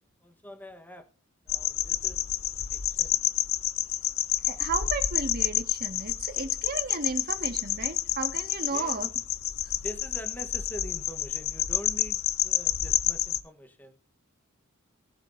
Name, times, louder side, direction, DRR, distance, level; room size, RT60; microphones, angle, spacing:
voice 1, 0.2-1.0 1.5-2.2 2.7-3.4 8.7-9.0 9.8-14.0, equal, 10° left, 1.1 m, -44 dB
sound 1, 1.5-13.4, left 12 dB, 85° left, 0.8 m, -29 dB
voice 2, 4.4-9.1, right 4 dB, 50° right, 1.7 m, -34 dB
20.0 x 7.4 x 2.7 m
head